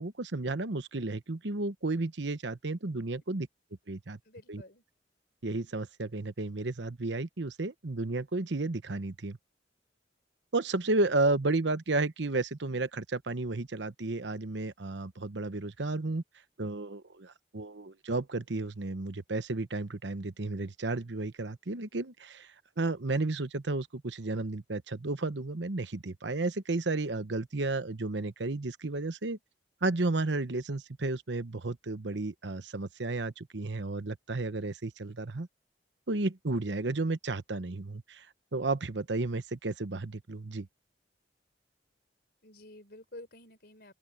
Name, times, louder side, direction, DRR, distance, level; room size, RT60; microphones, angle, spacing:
voice 1, 0.0-3.5 3.9-4.2 4.5-4.6 5.4-9.4 10.5-16.2 16.6-29.4 29.8-35.5 36.1-38.3 38.5-40.7, right 2 dB, 75° right, 1.0 m, -32 dB
voice 2, 4.2-4.8 42.4-43.9, left 1 dB, 55° left, 4.2 m, -50 dB
open air
head